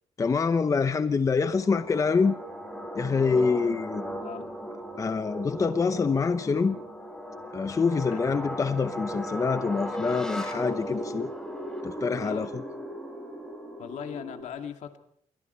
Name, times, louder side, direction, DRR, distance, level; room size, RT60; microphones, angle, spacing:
voice 1, 0.2-2.3 2.9-4.0 5.0-6.8 7.5-11.3 11.8-12.6, left 5 dB, 25° left, 10 dB, 0.8 m, -26 dB
sound 1, 1.3-14.4, equal, 5° left, 4.2 m, -37 dB
voice 2, 7.8-8.2 12.2-12.6 13.8-15.0, left 8 dB, 75° left, 5 dB, 2.4 m, -39 dB
27.5 x 23.5 x 4.5 m, 0.66 s
cardioid pair, 145°, 12 cm